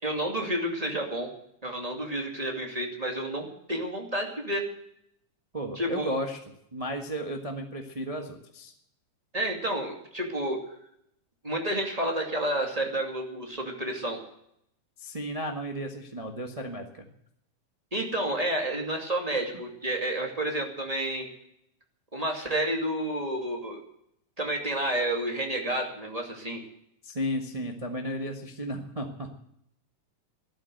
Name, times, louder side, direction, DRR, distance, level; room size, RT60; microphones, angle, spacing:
voice 1, 0.0-1.3 1.6-4.6 5.8-6.1 9.3-10.6 11.4-14.2 17.9-21.3 22.1-23.8 24.4-26.6, right 1 dB, 15° right, 1 dB, 2.1 m, -30 dB
voice 2, 5.5-6.4 6.7-8.7 15.0-17.1 27.0-29.3, equal, 45° right, 3 dB, 0.4 m, -34 dB
14.0 x 12.5 x 7.9 m, 0.75 s
omnidirectional pair, 3.5 m